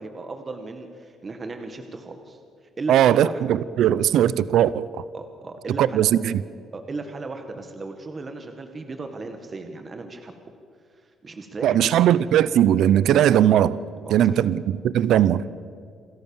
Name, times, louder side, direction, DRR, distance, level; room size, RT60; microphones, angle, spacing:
voice 1, 0.0-2.4 2.8-3.4 5.1-6.1 6.7-10.3 10.9-12.1 14.1-14.4, right 3 dB, 35° right, 1.8 m, -36 dB
voice 2, 2.9-4.9 5.8-6.4 11.6-13.8 14.1-15.5, right 11 dB, 80° right, 0.5 m, -19 dB
27.5 x 13.5 x 7.2 m
cardioid pair, 90°, 0 cm